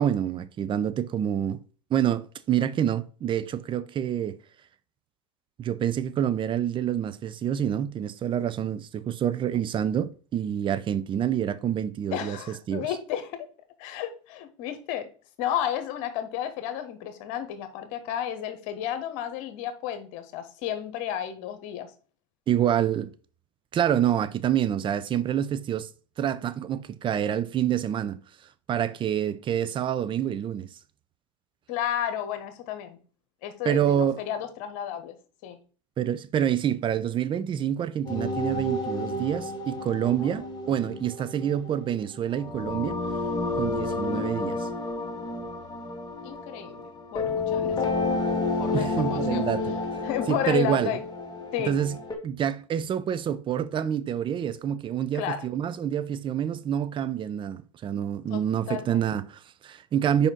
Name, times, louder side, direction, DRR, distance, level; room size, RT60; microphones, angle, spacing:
voice 1, 0.0-1.6 1.9-4.4 5.6-12.4 12.7-12.9 22.5-23.1 23.7-25.9 26.2-28.2 28.7-30.7 33.6-34.2 36.0-43.0 43.6-44.7 48.7-49.7 50.3-51.0 51.7-52.0 52.2-60.3, right 9 dB, 30° right, 0.6 m, -27 dB
voice 2, 12.1-13.5 13.8-15.1 15.4-21.9 31.7-33.0 33.4-35.1 35.4-35.6 40.2-40.4 46.2-48.3 48.6-49.5 50.0-51.0 51.5-51.8 55.1-55.4 58.3-58.4 58.7-59.0, left 10 dB, 60° left, 1.4 m, -32 dB
sound 1, 38.1-52.2, left 3 dB, 25° left, 2.0 m, -31 dB
5.1 x 4.9 x 3.8 m
hypercardioid pair, 95°, 16 cm